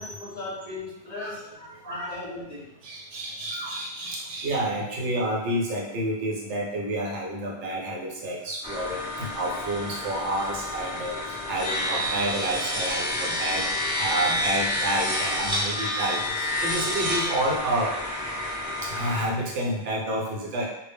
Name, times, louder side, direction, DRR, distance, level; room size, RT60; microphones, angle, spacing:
voice 1, 0.0-1.5 1.8-2.7, left 2 dB, 50° left, -6 dB, 0.6 m, -37 dB
voice 2, 1.6-2.2 2.8-11.1 11.5-13.6 14.0-16.2 16.6-17.9 19.0-20.7, right 1 dB, 90° right, -2 dB, 1.0 m, -29 dB
sound 1, 8.6-19.2, left 1 dB, 5° right, 0.7 m, -29 dB
2.0 x 2.0 x 3.4 m, 0.86 s
omnidirectional pair, 1.2 m